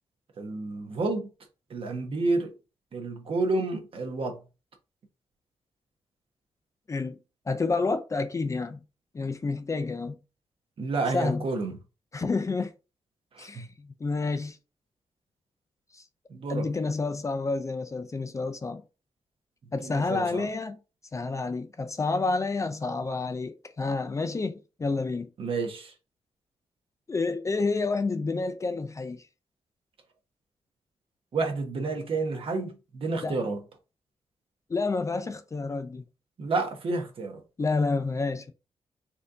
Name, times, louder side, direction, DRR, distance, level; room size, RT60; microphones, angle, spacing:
voice 1, 0.4-1.3 1.7-2.5 2.9-4.4 10.8-11.8 13.3-13.6 16.3-16.7 19.8-20.5 25.4-25.9 31.3-33.6 36.4-37.4, right 3 dB, 55° right, 1.2 m, -30 dB
voice 2, 7.5-8.8 9.1-10.2 11.1-11.4 12.1-12.7 13.4-14.6 15.9-16.0 16.5-18.8 19.7-20.8 21.1-25.3 27.1-29.2 33.2-33.4 34.7-36.0 37.6-38.5, left 3 dB, 30° left, 0.4 m, -29 dB
4.2 x 2.7 x 3.8 m
wide cardioid pair, 115°, 11 cm